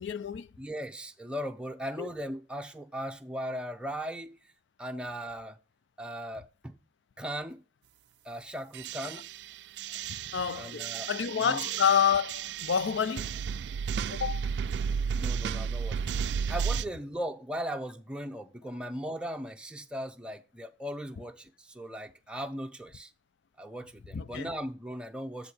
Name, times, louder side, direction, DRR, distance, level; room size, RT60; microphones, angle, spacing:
voice 1, 0.0-0.5 2.0-2.1 10.3-13.4 14.1-14.5 24.1-24.5, left 7 dB, 85° left, 0.4 m, -28 dB
voice 2, 0.6-4.4 4.8-5.6 6.0-6.7 7.2-7.6 8.2-9.3 10.5-11.1 11.4-11.6 14.1-14.2 15.1-23.1 23.6-25.5, equal, 5° right, 0.6 m, -38 dB
sound 1, 8.7-16.8, right 6 dB, 70° right, 0.3 m, -33 dB
7.8 x 4.5 x 4.8 m
head